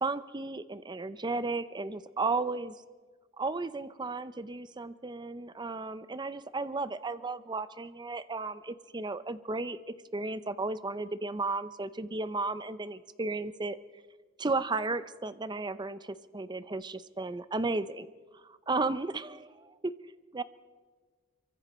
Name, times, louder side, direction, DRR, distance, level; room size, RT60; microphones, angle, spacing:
voice 1, 0.0-2.7 3.4-9.8 10.1-13.8 14.4-18.1 18.4-19.9 20.3-20.4, right 3 dB, 20° right, 14 dB, 0.6 m, -34 dB
26.0 x 23.5 x 4.3 m, 1.4 s
head